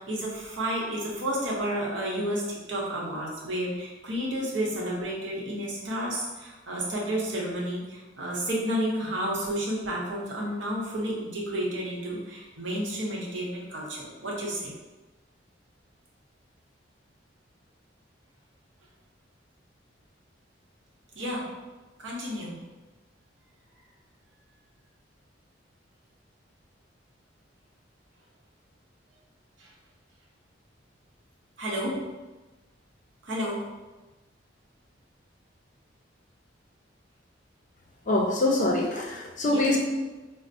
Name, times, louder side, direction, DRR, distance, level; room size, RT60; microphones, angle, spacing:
voice 1, 0.0-2.4 2.7-14.7 21.1-21.5 22.0-22.6 29.6-29.7 31.6-32.0 33.2-33.6 39.5-39.6, equal, 75° right, -4 dB, 0.8 m, -31 dB
voice 2, 38.1-39.8, left 2 dB, 40° left, 0 dB, 0.5 m, -24 dB
4.3 x 2.0 x 2.5 m, 1.2 s
head